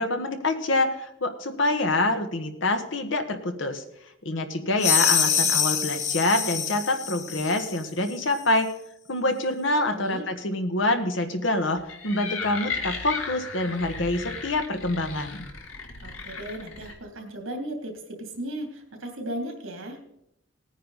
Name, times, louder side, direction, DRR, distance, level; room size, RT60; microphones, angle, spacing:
voice 1, 0.0-3.8 4.2-8.7 9.1-15.5, left 2 dB, 65° left, 7 dB, 1.4 m, -26 dB
sound 1, 4.8-7.8, left 7 dB, 35° left, 1.0 m, -25 dB
voice 2, 9.9-10.2 16.0-20.0, right 1 dB, 85° right, 3 dB, 2.8 m, -36 dB
sound 2, 11.8-16.9, left 4 dB, 85° left, 1.8 m, -35 dB
18.0 x 9.5 x 4.1 m, 0.79 s
head